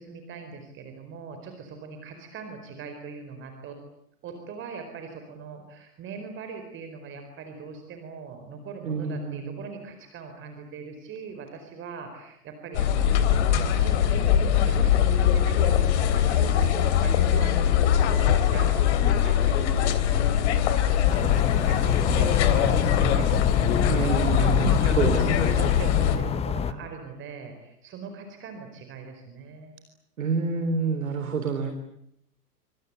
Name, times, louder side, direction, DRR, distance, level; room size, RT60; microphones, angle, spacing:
voice 1, 0.0-3.8 4.2-13.1 13.7-20.5 21.0-23.4 24.0-29.7, right 5 dB, 25° right, 6 dB, 4.6 m, -41 dB
voice 2, 8.8-9.6 23.9-25.6 30.2-31.7, right 5 dB, 60° right, 8 dB, 3.8 m, -28 dB
sound 1, 12.7-26.2, left 9 dB, 45° left, 3.3 m, -22 dB
sound 2, 21.1-26.7, left 7 dB, 15° left, 1.1 m, -27 dB
27.5 x 26.0 x 8.2 m, 0.78 s
figure-of-eight pair, 105°, 47 cm